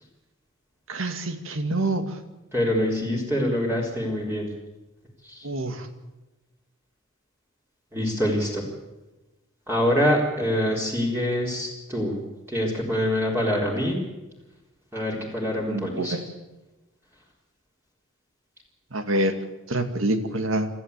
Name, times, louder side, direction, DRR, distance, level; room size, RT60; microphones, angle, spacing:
voice 1, 0.9-2.2 5.4-5.9 15.7-16.2 18.9-19.3 19.7-20.7, right 1 dB, 70° right, 8 dB, 2.1 m, -26 dB
voice 2, 2.5-4.5 5.3-5.5 7.9-8.6 9.7-12.1 12.5-14.0 14.9-16.2, equal, 10° right, -3 dB, 3.9 m, -25 dB
27.0 x 14.0 x 8.3 m, 1.1 s
head